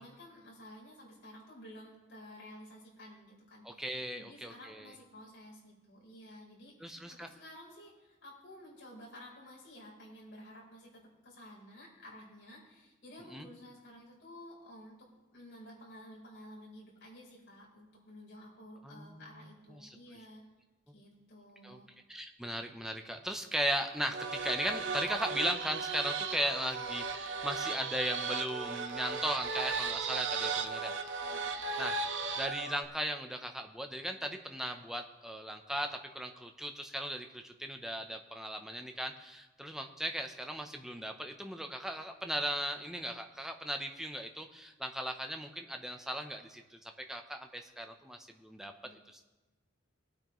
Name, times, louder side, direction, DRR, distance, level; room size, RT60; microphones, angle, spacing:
voice 1, 0.0-20.4 20.9-21.9 31.2-31.6 48.8-48.9, left 1 dB, 55° left, -4 dB, 4.0 m, -53 dB
voice 2, 3.6-4.9 6.8-7.3 13.3-13.5 18.8-20.0 21.6-21.8 22.1-30.9 31.8-32.0 32.4-46.8 47.1-48.7 49.1-49.2, equal, ahead, 4 dB, 0.7 m, -37 dB
sound 1, 24.1-32.8, right 4 dB, 65° right, 0.8 m, -36 dB
19.0 x 8.7 x 3.1 m, 1.2 s
head